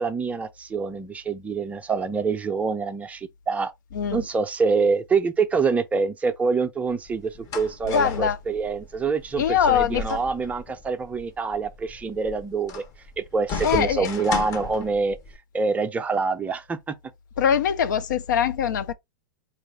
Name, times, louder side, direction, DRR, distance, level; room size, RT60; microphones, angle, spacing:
voice 1, 0.0-3.7 4.1-12.8 13.2-15.2 15.5-16.9, right 4 dB, 15° right, 0.6 m, -26 dB
voice 2, 3.9-4.3 7.8-8.4 9.4-10.2 13.6-14.1 17.4-18.9, left 8 dB, 65° left, 0.6 m, -22 dB
sound 1, 6.9-15.4, left 4 dB, 30° left, 0.8 m, -36 dB
4.6 x 2.5 x 3.7 m
figure-of-eight pair, 105°, 11 cm